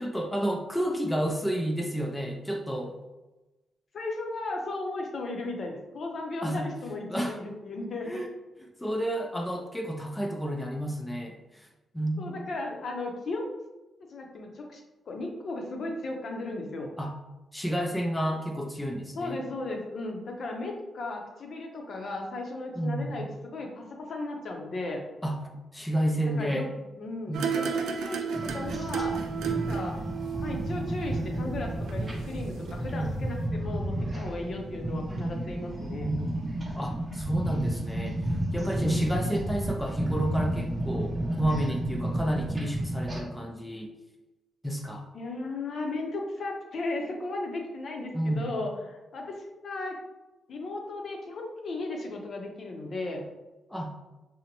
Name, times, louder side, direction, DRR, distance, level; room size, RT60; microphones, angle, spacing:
voice 1, 0.0-3.0 6.4-6.7 7.1-7.4 8.0-8.3 8.8-11.7 11.9-12.5 17.0-17.1 17.5-19.4 22.7-23.1 25.2-25.4 25.7-26.7 27.3-27.6 32.9-33.4 36.0-36.2 36.8-38.2 38.5-43.9 44.6-45.1 48.1-48.5 53.7-53.9, right 1 dB, 10° left, 1 dB, 0.4 m, -31 dB
voice 2, 3.9-8.2 12.2-13.5 14.1-16.9 19.2-25.0 26.4-26.7 27.0-29.1 29.5-30.0 30.4-36.1 38.6-39.1 45.1-49.4 49.6-49.9 50.5-53.2, left 2 dB, 60° left, 1 dB, 0.6 m, -35 dB
sound 1, 27.3-32.4 32.7-32.8, right 6 dB, 85° right, 0.3 m, -33 dB
sound 2, 28.3-43.2, right 1 dB, 25° right, 0.7 m, -32 dB
3.9 x 2.1 x 2.9 m, 1.1 s
cardioid pair, 75°, 0 cm